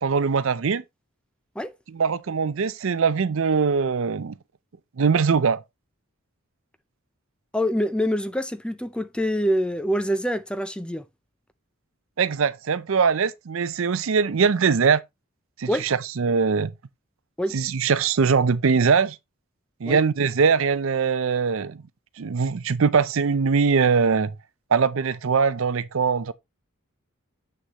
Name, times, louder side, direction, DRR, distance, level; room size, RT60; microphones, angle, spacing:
voice 1, 0.0-0.8 1.9-4.3 5.0-5.6 12.2-15.0 15.6-16.7 17.5-19.2 19.8-21.8 22.2-24.3 24.7-26.3, right 5 dB, 65° right, 0.5 m, -22 dB
voice 2, 7.5-11.0 15.7-15.9 17.4-17.5 19.9-20.0, equal, 5° left, 0.4 m, -25 dB
7.8 x 6.4 x 2.9 m
head